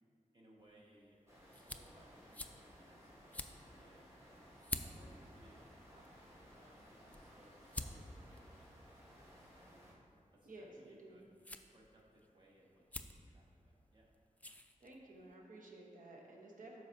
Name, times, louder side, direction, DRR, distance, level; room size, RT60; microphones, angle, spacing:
voice 1, 0.3-4.5 4.8-9.8 10.3-11.3 11.7-12.8 13.1-14.1, right 1 dB, 35° right, -4 dB, 1.5 m, -66 dB
sound 1, 0.6-15.3, left 1 dB, 10° left, 0.3 m, -52 dB
sound 2, 1.3-9.9, equal, 20° right, 1.7 m, -60 dB
voice 2, 10.4-11.2 14.8-16.8, right 2 dB, 80° right, -1 dB, 1.1 m, -54 dB
12.5 x 4.9 x 2.7 m, 2.3 s
wide cardioid pair, 100°, 13 cm